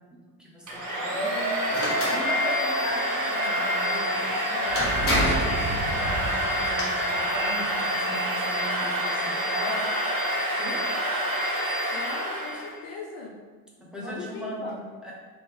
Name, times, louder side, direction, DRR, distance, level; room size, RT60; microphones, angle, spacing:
voice 1, 0.1-1.5 1.8-9.9 10.6-10.8 13.8-14.7 15.0-15.1, equal, ahead, -5 dB, 1.0 m, -38 dB
Domestic sounds home sounds, 0.7-12.8, equal, 35° right, 1.3 m, -27 dB
sound 1, 1.7-2.2 4.3-4.4 4.8-5.5 6.4-6.8, left 1 dB, 25° left, 1.2 m, -27 dB
sound 2, 4.7-7.6, right 3 dB, 55° right, 0.7 m, -31 dB
voice 2, 11.9-13.4 14.0-14.9, left 3 dB, 55° left, 0 dB, 0.7 m, -39 dB
3.0 x 3.0 x 3.3 m, 1.4 s
hypercardioid pair, 60°, 49 cm